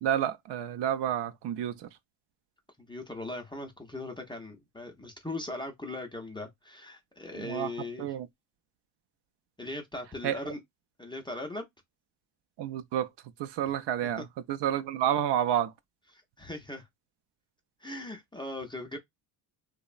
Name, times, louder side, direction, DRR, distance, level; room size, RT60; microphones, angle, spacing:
voice 1, 0.0-1.9 7.3-7.7 8.0-8.3 10.2-10.5 12.6-13.1 13.4-15.7, right 10 dB, 60° right, 0.5 m, -30 dB
voice 2, 2.8-8.1 9.6-10.6 11.0-11.6 16.1-16.9 17.8-19.0, left 2 dB, 10° left, 0.4 m, -39 dB
2.9 x 2.0 x 2.3 m
cardioid pair, 100°, 49 cm